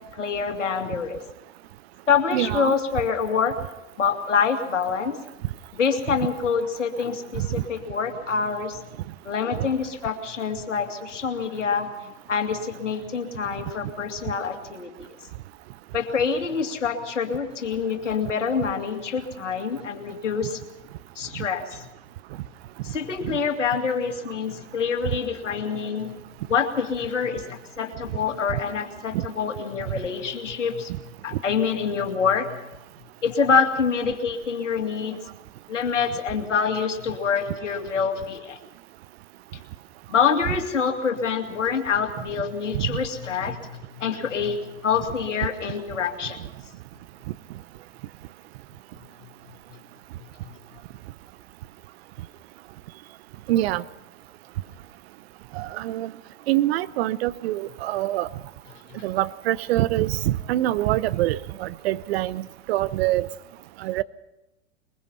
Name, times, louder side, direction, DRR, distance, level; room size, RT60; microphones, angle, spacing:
voice 1, 0.1-1.2 2.1-3.6 4.0-5.2 5.7-8.8 9.3-11.9 12.3-14.9 15.9-20.6 21.2-21.9 22.8-26.1 26.5-30.9 31.2-32.6 33.2-35.2 35.7-38.6 40.1-44.6 44.8-46.4 50.4-50.5 58.9-59.0, left 6 dB, 80° left, 2.5 m, -26 dB
voice 2, 2.3-2.7 7.4-7.5 23.2-23.4 42.7-42.9 53.5-53.8 55.6-56.1 56.5-58.3 59.0-62.4 62.7-63.2 63.8-64.0, right 15 dB, 55° right, 0.9 m, -24 dB
22.5 x 21.5 x 5.6 m
hypercardioid pair, 95°, 36 cm